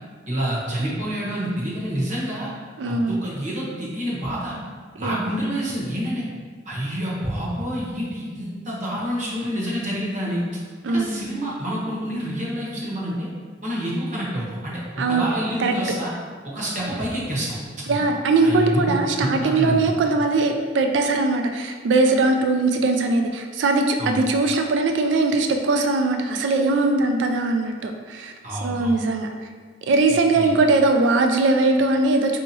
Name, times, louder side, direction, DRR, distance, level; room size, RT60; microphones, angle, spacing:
voice 1, 0.3-2.5 2.9-4.6 5.0-6.2 6.6-10.4 10.9-13.3 13.6-16.1 16.4-17.6 17.9-18.0 18.4-19.9 24.0-24.2 28.4-28.9 30.3-30.5, equal, 45° right, -5 dB, 0.9 m, -28 dB
voice 2, 2.8-3.2 5.0-5.4 10.8-11.2 15.0-15.3 15.6-15.7 17.9-28.3 28.6-29.3 29.9-32.4, right 3 dB, 85° right, 4 dB, 0.3 m, -20 dB
4.5 x 2.8 x 2.7 m, 1.5 s
head